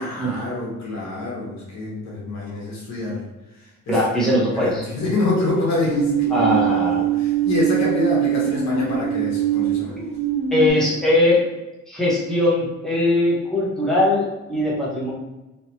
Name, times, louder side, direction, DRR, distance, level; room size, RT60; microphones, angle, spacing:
voice 1, 0.0-3.2 3.9-10.0, left 2 dB, 65° left, -4 dB, 1.4 m, -26 dB
voice 2, 3.9-4.8 6.3-7.0 10.5-11.4 11.9-15.1, left 1 dB, ahead, -6 dB, 1.2 m, -20 dB
sound 1, 5.8-10.7, right 10 dB, 20° left, 0.7 m, -22 dB
3.1 x 2.9 x 2.9 m, 1.0 s
cardioid pair, 90°, 30 cm